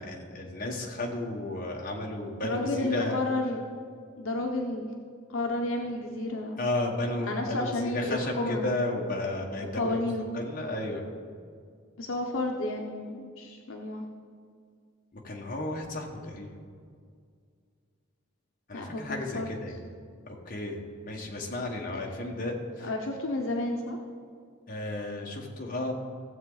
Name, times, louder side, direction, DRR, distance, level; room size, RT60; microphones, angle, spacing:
voice 1, 0.0-3.2 6.6-10.0 10.3-11.0 15.1-16.5 18.7-19.9 20.2-22.9 24.7-25.9, left 2 dB, 40° left, -1 dB, 1.5 m, -33 dB
voice 2, 2.4-3.6 4.2-4.9 5.3-6.6 7.2-8.6 9.7-10.3 12.0-14.0 18.7-19.5 22.8-24.0, left 2 dB, 70° left, 1 dB, 0.9 m, -31 dB
16.5 x 7.4 x 4.0 m, 2.1 s
head